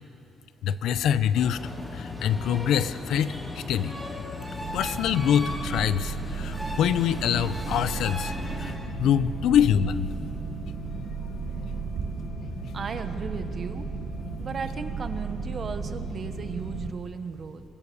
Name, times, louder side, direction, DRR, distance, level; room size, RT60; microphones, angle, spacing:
voice 1, 0.6-4.0 4.7-8.3 8.6-8.7 9.0-10.1, left 9 dB, 75° left, 14 dB, 0.8 m, -25 dB
sound 1, 0.9-16.9, left 5 dB, 50° left, 1.3 m, -40 dB
sound 2, 1.3-8.8, equal, 5° left, 3.3 m, -38 dB
sound 3, 4.6-16.9, right 6 dB, 65° right, 1.3 m, -35 dB
voice 2, 12.7-13.9 14.4-17.6, right 5 dB, 35° right, 9 dB, 1.2 m, -35 dB
25.0 x 21.0 x 6.9 m, 2.7 s
cardioid pair, 150°, 0 cm